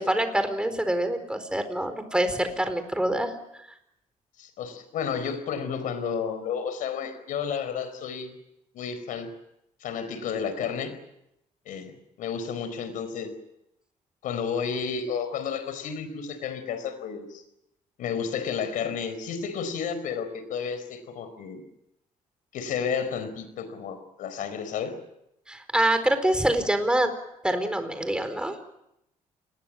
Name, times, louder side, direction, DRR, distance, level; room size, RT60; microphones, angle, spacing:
voice 1, 0.0-3.3 25.5-27.1 27.4-28.6, right 1 dB, 5° right, 9 dB, 4.5 m, -25 dB
voice 2, 4.4-8.3 8.7-9.3 9.8-11.0 11.7-11.9 12.2-13.3 14.2-17.4 18.0-21.6 22.5-25.0, left 6 dB, 85° left, 12 dB, 4.6 m, -31 dB
29.0 x 21.5 x 7.6 m, 0.82 s
cardioid pair, 100°, 14 cm